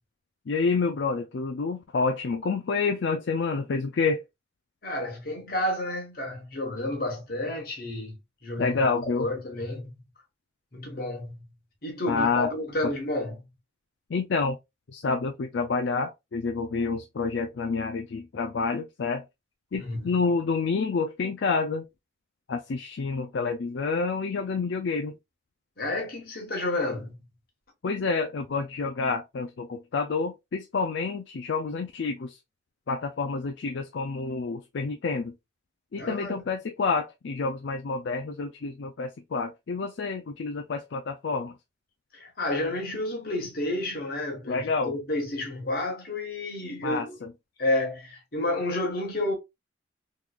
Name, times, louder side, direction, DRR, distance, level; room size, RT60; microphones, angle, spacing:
voice 1, 0.5-4.2 8.6-9.3 12.1-12.5 14.1-14.6 14.9-19.2 19.7-21.8 22.5-25.1 27.8-32.4 32.9-35.3 35.9-41.5 44.5-45.0 46.8-47.3, left 4 dB, 70° left, 0.4 m, -28 dB
voice 2, 4.8-8.2 8.4-8.8 9.2-10.0 10.7-11.5 11.8-13.5 19.7-20.2 25.8-27.2 35.9-36.4 42.1-47.2 47.6-49.3, left 1 dB, 50° left, 1.4 m, -30 dB
3.6 x 3.1 x 2.4 m
head